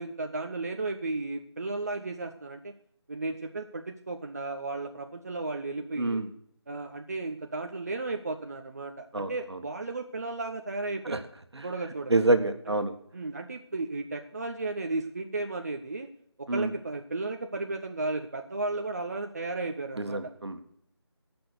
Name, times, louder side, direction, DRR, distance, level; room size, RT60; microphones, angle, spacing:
voice 1, 0.0-2.7 3.1-6.2 6.7-11.3 11.6-12.2 12.7-12.8 13.1-16.1 16.4-20.2, right 3 dB, 35° right, 4 dB, 0.7 m, -34 dB
voice 2, 6.0-6.3 9.1-9.3 11.0-11.2 11.6-11.7 12.1-12.9 16.5-16.7 20.0-20.6, right 2 dB, 70° right, 8 dB, 1.7 m, -26 dB
17.0 x 6.1 x 6.5 m, 0.69 s
figure-of-eight pair, 165°, 15 cm